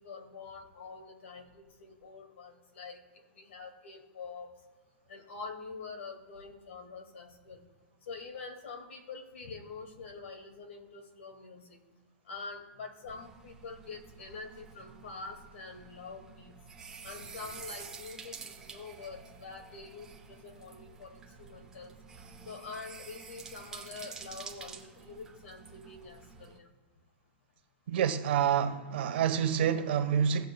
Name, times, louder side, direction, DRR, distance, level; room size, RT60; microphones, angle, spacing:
voice 1, 0.0-3.0 3.3-4.5 5.1-7.6 8.0-11.8 12.3-16.5 17.0-21.9 22.4-26.7, left 4 dB, 80° left, 2.0 m, -46 dB
sound 1, 13.1-26.6, right 5 dB, 10° right, 0.8 m, -49 dB
voice 2, 27.9-30.4, right 8 dB, 55° right, 1.1 m, -27 dB
17.5 x 6.9 x 2.3 m
supercardioid pair, 170°, 7 cm